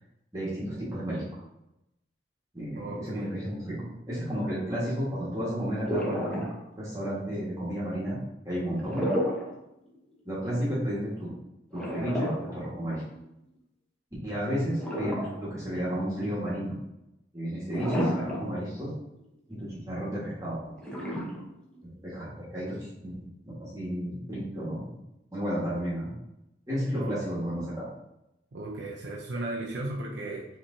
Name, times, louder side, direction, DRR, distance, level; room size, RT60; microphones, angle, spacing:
voice 1, 0.3-1.2 2.5-3.7 4.1-6.4 6.8-8.2 8.4-9.0 10.2-11.3 11.7-13.0 14.2-16.7 17.3-18.9 19.5-20.7 21.8-23.1 23.4-24.9 25.3-26.1 26.7-27.9, equal, 20° right, -9 dB, 1.6 m, -32 dB
voice 2, 2.7-3.4 3.7-4.0 26.9-27.3 28.5-30.5, right 2 dB, 70° right, -2 dB, 0.6 m, -36 dB
sound 1, 5.8-6.8 8.7-9.6 9.9-10.0 11.7-13.2 14.7-15.7 16.1-16.2 17.7-18.6 19.0-19.1 20.8-21.8, equal, 5° left, 0.8 m, -31 dB
5.7 x 3.3 x 2.7 m, 0.87 s
head